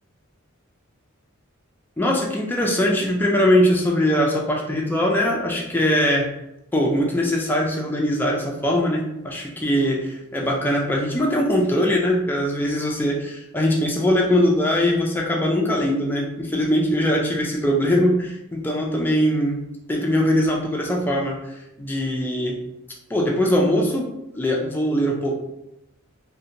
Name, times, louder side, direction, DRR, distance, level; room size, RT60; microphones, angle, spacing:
voice 1, 2.0-6.3 6.7-19.6 19.9-22.6 23.1-24.1 24.4-25.3, equal, 10° left, -1 dB, 0.3 m, -21 dB
2.7 x 2.1 x 2.5 m, 0.88 s
head